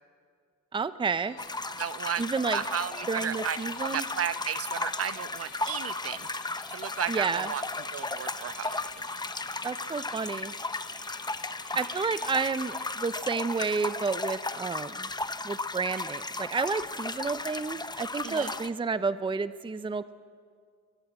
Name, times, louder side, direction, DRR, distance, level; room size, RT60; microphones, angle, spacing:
voice 1, 0.7-1.4 2.2-2.6 3.1-4.0 7.1-7.5 9.6-10.5 11.7-15.1 15.4-20.1, right 4 dB, 15° right, 14 dB, 0.6 m, -30 dB
Musical instrument, 1.1-16.3, left 9 dB, 75° left, 1.7 m, -52 dB
sound 1, 1.4-18.7, left 2 dB, 15° left, 1.0 m, -35 dB
voice 2, 1.8-2.2 2.5-6.3 6.7-7.6 7.9-8.8 18.2-18.6, right 9 dB, 50° right, 14 dB, 0.9 m, -34 dB
22.5 x 19.5 x 8.2 m, 2.1 s
cardioid pair, 90°, 30 cm